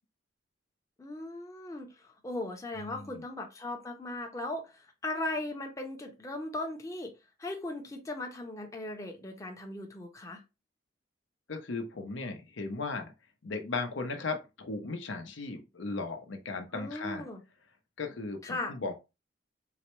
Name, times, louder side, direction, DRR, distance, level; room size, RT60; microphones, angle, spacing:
voice 1, 1.0-4.7 5.0-7.1 7.4-10.4 16.7-17.4 18.4-18.7, left 2 dB, 15° left, 0.6 m, -38 dB
voice 2, 2.7-3.2 11.5-13.1 13.4-17.3 18.0-18.9, left 3 dB, 85° left, 0.7 m, -36 dB
3.9 x 2.2 x 3.0 m
head